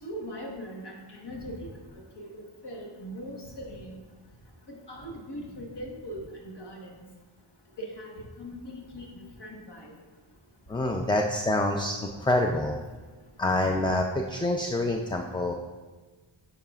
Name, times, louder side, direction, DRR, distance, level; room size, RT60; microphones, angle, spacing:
voice 1, 0.0-1.7 2.2-4.0 4.7-6.9 7.8-9.9, equal, 55° left, -1 dB, 1.3 m, -40 dB
voice 2, 10.7-12.7 13.4-15.5, left 1 dB, 10° left, 2 dB, 0.3 m, -26 dB
10.5 x 4.8 x 2.4 m, 1.3 s
wide cardioid pair, 55°, 49 cm